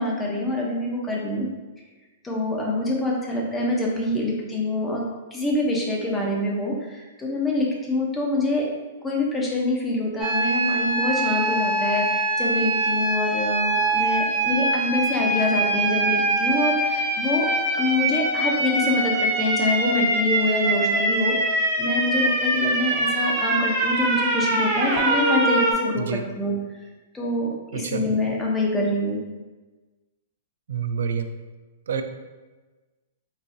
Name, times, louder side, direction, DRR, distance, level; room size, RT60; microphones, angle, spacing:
voice 1, 0.0-1.5 2.2-5.0 5.3-8.7 9.0-17.5 17.7-26.5 27.1-29.2, left 2 dB, 15° left, -3 dB, 0.8 m, -25 dB
sound 1, 10.2-25.7, right 2 dB, 20° right, 1.0 m, -23 dB
voice 2, 27.7-28.0 30.7-31.3 31.9-32.0, right 6 dB, 75° right, 8 dB, 0.3 m, -27 dB
3.9 x 2.3 x 2.7 m, 1.2 s
hypercardioid pair, 125°, 0 cm